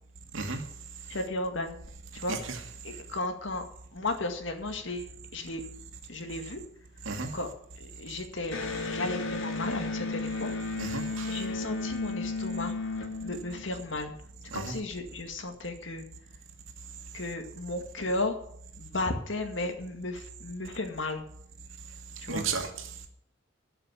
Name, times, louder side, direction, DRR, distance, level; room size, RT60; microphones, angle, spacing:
voice 1, 1.1-1.8 2.1-2.4 2.8-3.7 3.9-5.6 6.1-6.6 7.3-8.6 8.9-10.8 11.3-14.1 14.5-16.1 17.1-18.4 18.8-21.2 22.2-22.5, left 2 dB, 65° left, 2.1 m, -34 dB
voice 2, 2.3-2.6 7.1-7.3 10.8-11.3 14.5-14.8 22.3-22.7, right 4 dB, 80° right, 2.2 m, -33 dB
Electric guitar, 8.5-14.0, left 3 dB, 85° left, 1.8 m, -34 dB
12.5 x 6.7 x 9.9 m
head